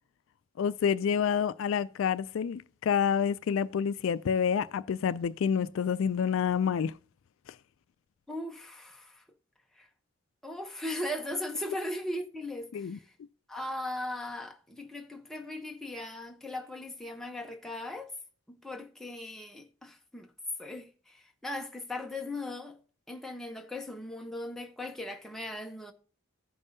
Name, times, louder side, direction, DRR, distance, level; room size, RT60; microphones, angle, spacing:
voice 1, 0.6-6.9 12.7-13.0, left 7 dB, 70° left, 0.3 m, -28 dB
voice 2, 8.3-9.2 9.7-9.9 10.4-13.1 13.5-18.1 18.5-20.3 20.6-22.8 23.1-25.9, left 1 dB, ahead, 0.8 m, -38 dB
15.0 x 5.4 x 2.7 m
head